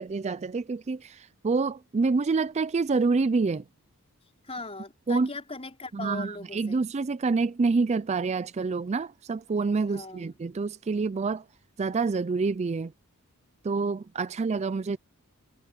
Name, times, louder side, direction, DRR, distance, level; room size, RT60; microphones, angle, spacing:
voice 1, 0.0-3.6 5.1-5.3 5.9-11.4 11.8-12.9 13.6-15.0, right 4 dB, 30° right, 0.4 m, -27 dB
voice 2, 4.4-6.8 9.9-10.4 14.3-14.4, left 3 dB, 25° left, 4.3 m, -39 dB
head